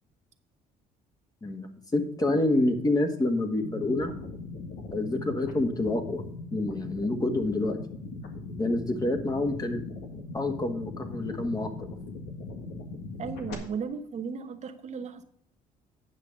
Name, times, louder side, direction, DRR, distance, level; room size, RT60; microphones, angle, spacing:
voice 1, 1.4-4.1 4.9-6.2 6.5-7.8 8.6-9.8 10.3-11.9, left 2 dB, 25° left, 6 dB, 1.7 m, -27 dB
sound 1, 3.5-13.5, left 3 dB, 85° left, 1.8 m, -39 dB
voice 2, 13.2-15.2, right 6 dB, 45° right, 5 dB, 1.0 m, -35 dB
9.5 x 6.0 x 5.3 m, 0.65 s
cardioid pair, 90°, 16 cm